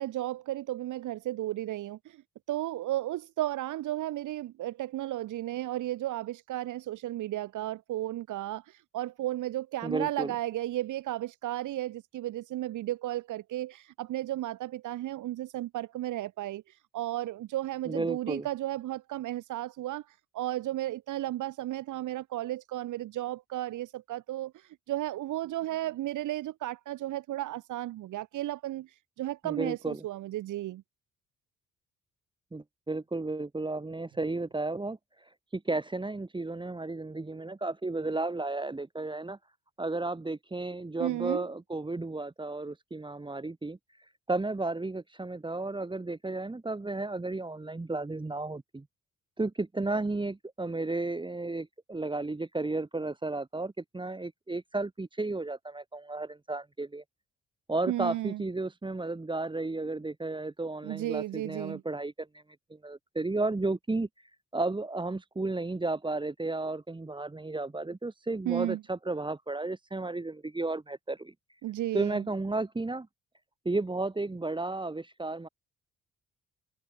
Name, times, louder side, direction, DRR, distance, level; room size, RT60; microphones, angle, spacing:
voice 1, 0.0-2.2 2.5-30.8 41.0-41.5 57.9-58.4 60.8-61.8 68.5-68.8 71.6-72.3, right 14 dB, 80° right, 1.7 m, -34 dB
voice 2, 9.8-10.3 17.9-18.5 29.4-30.0 32.5-39.4 39.8-48.9 49.4-57.0 57.7-62.4 62.7-71.6 71.9-73.1 73.7-75.5, right 2 dB, 15° right, 2.0 m, -33 dB
cardioid pair, 90°, 30 cm